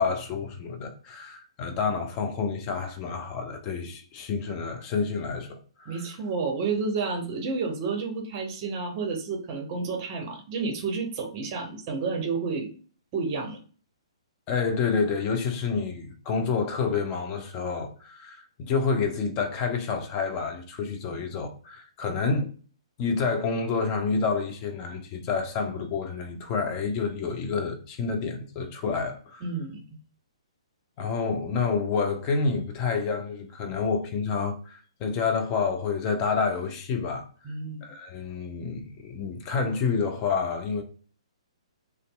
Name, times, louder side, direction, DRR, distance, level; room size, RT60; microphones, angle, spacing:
voice 1, 0.0-6.0 14.5-22.5 23.0-29.4 31.0-37.2 37.8-40.8, left 5 dB, 30° left, 0.6 m, -28 dB
voice 2, 5.9-12.7 13.1-13.6 22.1-22.2 29.4-29.8 37.4-37.8, right 4 dB, 35° right, 0.7 m, -30 dB
2.6 x 2.2 x 2.3 m
figure-of-eight pair, 125°, 3 cm